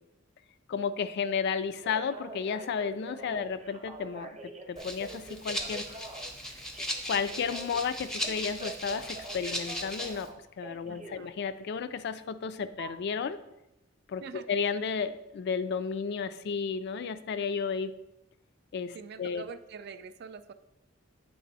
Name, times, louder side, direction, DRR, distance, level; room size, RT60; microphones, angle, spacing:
voice 1, 0.7-5.9 7.1-10.3 10.6-13.4 14.1-17.9 18.7-19.4, left 6 dB, 55° left, 13 dB, 0.3 m, -33 dB
Telephone, 1.6-11.2 12.8-12.9, right 2 dB, 35° right, 0.8 m, -45 dB
Rattle (instrument), 4.8-10.3, equal, 5° left, 0.5 m, -37 dB
voice 2, 10.9-11.3 14.2-14.6 18.9-20.5, right 5 dB, 55° right, 11 dB, 0.3 m, -45 dB
8.4 x 3.4 x 4.0 m, 0.89 s
head